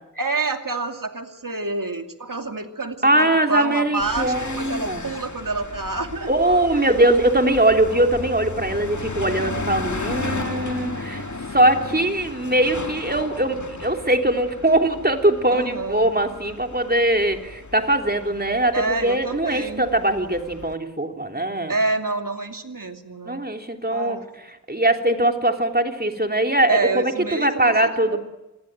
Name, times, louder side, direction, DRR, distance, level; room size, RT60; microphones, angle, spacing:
voice 1, 0.2-6.3 6.7-6.9 9.4-9.8 15.5-16.1 18.7-19.9 21.7-23.4 23.9-24.3 26.7-28.2, right 3 dB, 80° right, 5 dB, 2.7 m, -28 dB
voice 2, 3.0-5.1 6.3-11.2 11.5-21.7 23.2-24.2 24.7-28.2, right 1 dB, 30° right, 4 dB, 3.4 m, -21 dB
sound 1, 4.0-20.8, left 3 dB, 60° left, 1.9 m, -34 dB
28.5 x 21.0 x 9.1 m, 1.0 s
wide cardioid pair, 45°, 32 cm